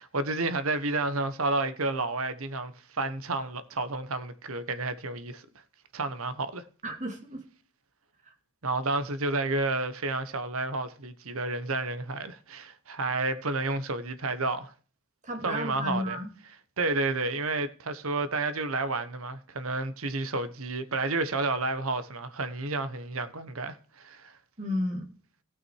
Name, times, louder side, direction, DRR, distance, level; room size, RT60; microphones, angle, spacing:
voice 1, 0.0-5.5 5.9-6.6 8.6-14.7 15.4-16.2 16.8-24.4, right 2 dB, 70° right, 1.2 m, -31 dB
voice 2, 6.8-7.4 8.3-8.4 15.2-16.3 24.6-25.1, equal, 35° right, 2.4 m, -32 dB
17.5 x 6.2 x 4.6 m
head